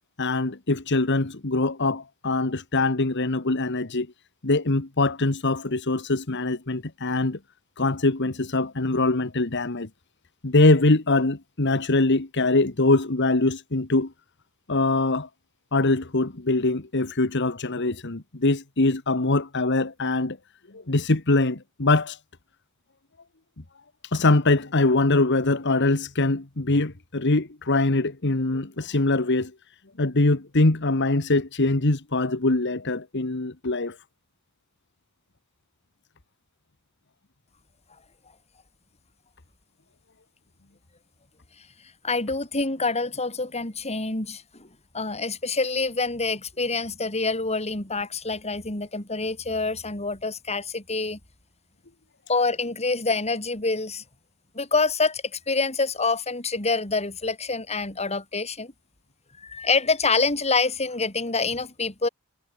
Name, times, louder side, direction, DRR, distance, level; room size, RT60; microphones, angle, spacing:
voice 1, 0.2-4.1 4.4-7.4 7.8-9.9 10.4-14.1 14.7-15.3 15.7-20.4 20.9-22.2 24.1-29.5 30.0-33.9, left 2 dB, 55° left, 1.6 m, -23 dB
voice 2, 42.0-44.7 44.9-51.2 52.3-54.0 54.5-58.7 59.4-62.1, left 3 dB, 30° left, 4.8 m, -26 dB
head